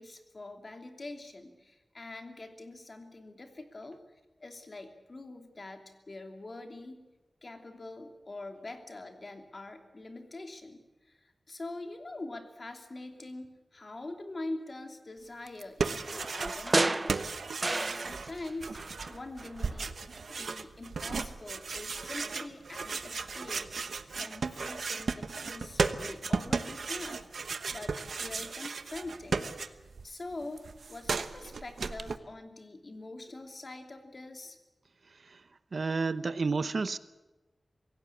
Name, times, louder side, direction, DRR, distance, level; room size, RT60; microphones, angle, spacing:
voice 1, 0.0-4.0 4.4-7.0 7.4-18.8 19.1-23.7 24.1-29.8 30.0-34.6, left 2 dB, 45° left, 5 dB, 2.9 m, -44 dB
sound 1, 15.5-16.8 17.1-30.1 30.3-32.2, right 4 dB, 90° right, 1.0 m, -35 dB
sound 2, 16.0-18.5 18.7-19.8 20.2-20.3, right 2 dB, 30° right, 0.6 m, -32 dB
voice 2, 35.7-37.0, right 4 dB, 65° right, 14 dB, 0.8 m, -30 dB
24.0 x 17.0 x 8.5 m, 1.1 s
wide cardioid pair, 95°, 0 cm